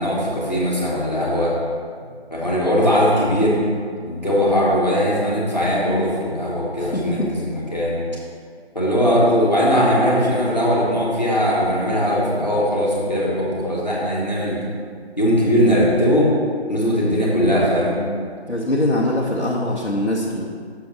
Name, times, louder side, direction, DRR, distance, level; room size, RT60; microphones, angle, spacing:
voice 1, 0.0-1.5 2.3-3.6 4.0-8.0 8.7-14.6 15.2-16.3 16.7-18.0, equal, 40° left, -6 dB, 1.5 m, -19 dB
voice 2, 6.8-7.3 18.5-20.4, left 1 dB, 80° left, -5 dB, 1.1 m, -22 dB
6.9 x 3.7 x 6.3 m, 2.1 s
figure-of-eight pair, 180°, 33 cm